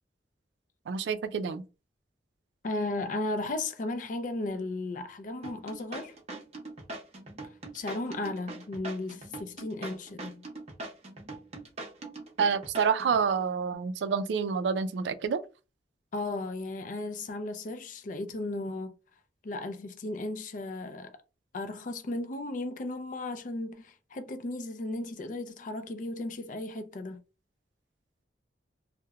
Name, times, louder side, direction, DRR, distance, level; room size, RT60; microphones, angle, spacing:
voice 1, 0.9-1.6 12.4-15.4, right 6 dB, 80° right, 0.3 m, -28 dB
voice 2, 2.6-6.2 7.7-10.5 16.1-18.9 19.4-21.1 21.5-27.2, left 2 dB, 45° left, 0.4 m, -35 dB
sound 1, 5.4-13.2, right 2 dB, 40° right, 0.6 m, -42 dB
2.8 x 2.1 x 2.3 m
head